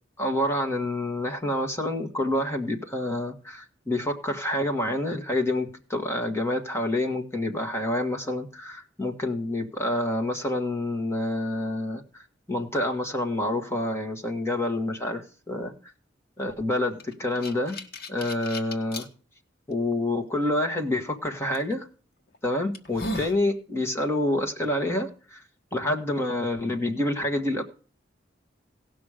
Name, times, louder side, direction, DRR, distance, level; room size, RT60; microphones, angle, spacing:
voice 1, 0.2-15.7 16.4-17.8 18.1-19.1 19.7-21.9 22.4-25.4 25.7-27.6, left 1 dB, 15° left, 3 dB, 1.5 m, -28 dB
sound 1, 17.0-19.1 19.7-19.8 21.5-21.7 22.3-22.4 22.7-23.4, left 1 dB, 55° left, 1.4 m, -35 dB
17.5 x 6.1 x 5.0 m, 0.39 s
head